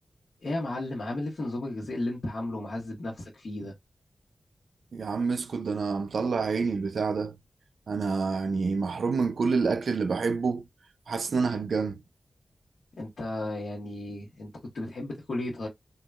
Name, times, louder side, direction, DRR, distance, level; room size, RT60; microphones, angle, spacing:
voice 1, 0.4-3.7 13.0-15.7, left 2 dB, 80° left, 1.3 m, -34 dB
voice 2, 4.9-7.4 7.9-10.7 11.1-12.0, right 4 dB, 90° right, 0.4 m, -28 dB
3.7 x 2.9 x 2.3 m
wide cardioid pair, 70°, 0 cm